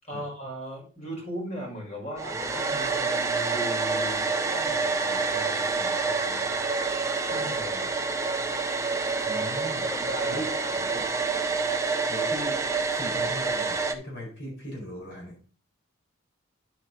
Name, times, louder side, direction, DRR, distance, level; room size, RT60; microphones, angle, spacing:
voice 1, 0.0-6.7 7.2-7.9 9.6-10.9, equal, 35° left, -2 dB, 5.2 m, -38 dB
Domestic sounds home sounds, 2.2-13.9, right 4 dB, 15° right, 0.6 m, -27 dB
voice 2, 9.3-9.9 10.3-10.5 10.9-11.1 12.1-12.6 12.9-15.4, equal, 60° left, -2 dB, 4.7 m, -38 dB
10.0 x 8.6 x 2.8 m, 0.39 s
head